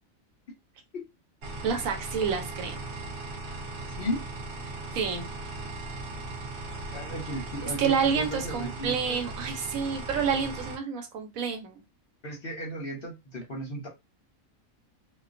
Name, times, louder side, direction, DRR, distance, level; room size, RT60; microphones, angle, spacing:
sound 1, 1.4-10.8, right 2 dB, 55° right, 0.8 m, -38 dB
voice 1, 1.6-2.8 4.6-5.3 7.8-11.8, right 6 dB, 75° right, 4 dB, 1.1 m, -29 dB
voice 2, 3.9-4.2 6.9-9.3 12.2-13.9, equal, 55° left, 0 dB, 0.7 m, -35 dB
2.4 x 2.2 x 2.4 m, 0.23 s
omnidirectional pair, 1.5 m